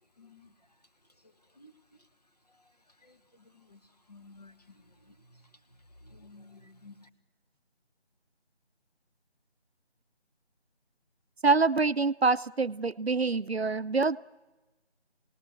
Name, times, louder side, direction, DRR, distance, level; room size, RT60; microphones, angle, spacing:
voice 1, 0.2-0.5 1.6-1.7 3.0-3.2 3.5-3.8 4.1-4.5 5.1-5.4 6.0-7.1, left 3 dB, 35° left, 7 dB, 1.5 m, -53 dB
voice 2, 11.4-14.2, right 4 dB, 65° right, 14 dB, 0.8 m, -25 dB
29.5 x 19.0 x 7.7 m, 1.1 s
figure-of-eight pair, 170°, 34 cm